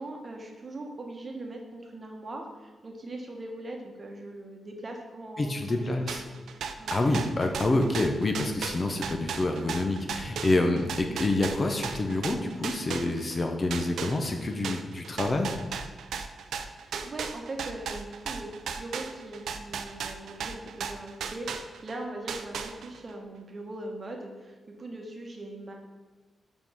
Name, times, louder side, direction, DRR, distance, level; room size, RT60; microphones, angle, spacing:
voice 1, 0.0-5.9 6.8-7.0 11.0-11.1 16.8-25.7, right 2 dB, 30° right, 2 dB, 1.1 m, -40 dB
voice 2, 5.4-6.2 6.9-15.5, left 2 dB, 30° left, 4 dB, 0.6 m, -27 dB
sound 1, 6.1-13.4 13.7-22.0 22.3-23.1, right 6 dB, 90° right, 0.5 m, -36 dB
5.4 x 5.1 x 6.1 m, 1.2 s
wide cardioid pair, 160°, 0 cm